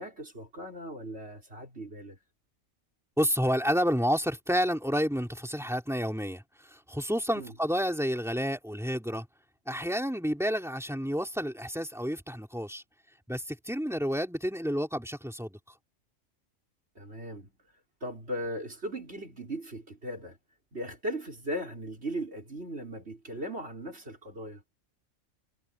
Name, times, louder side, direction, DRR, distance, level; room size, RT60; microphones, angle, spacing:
voice 1, 0.0-2.2 7.3-7.5 17.0-17.5 18.0-20.4 20.7-24.6, right 1 dB, 50° right, 5.5 m, -38 dB
voice 2, 3.2-9.3 9.7-12.8 13.3-15.6, equal, ahead, 3.2 m, -30 dB
omnidirectional pair, 1.3 m